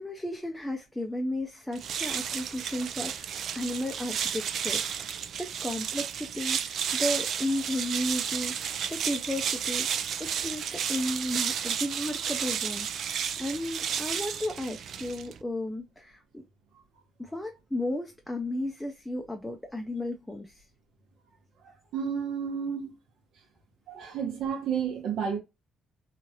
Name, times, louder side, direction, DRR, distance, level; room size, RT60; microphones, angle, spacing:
voice 1, 0.0-16.4 17.2-20.6, left 1 dB, 5° left, 0.5 m, -34 dB
sound 1, 1.7-15.4, right 8 dB, 60° right, 0.4 m, -32 dB
voice 2, 21.9-23.0 23.9-25.4, right 7 dB, 80° right, 1.2 m, -31 dB
3.1 x 2.4 x 2.7 m
cardioid pair, 115°, 0 cm